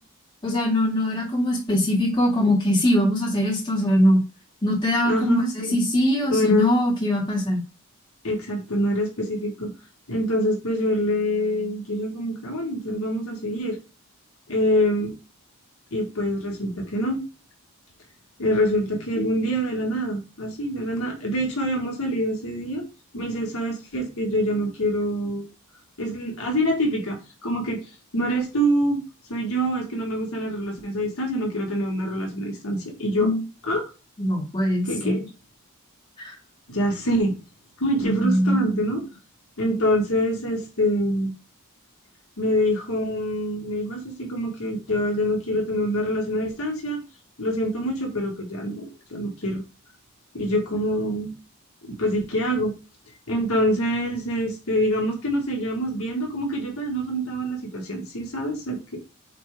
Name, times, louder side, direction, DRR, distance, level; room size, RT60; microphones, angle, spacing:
voice 1, 0.4-4.2 4.6-7.6 33.2-33.4 34.2-35.2 36.2-36.3 38.0-38.7, equal, 20° left, -3 dB, 2.2 m, -22 dB
voice 2, 5.0-5.7 6.3-6.7 8.2-9.7 10.1-13.8 14.5-15.1 15.9-17.2 18.4-22.8 23.1-25.5 26.0-27.8 28.1-29.0 29.3-33.3 33.6-33.8 34.8-35.2 36.7-37.4 37.8-39.0 39.6-41.3 42.4-47.0 47.4-48.8 49.1-49.6 50.3-51.3 51.8-52.7 53.3-59.0, equal, 70° left, 0 dB, 1.8 m, -25 dB
8.7 x 3.4 x 3.6 m, 0.30 s
head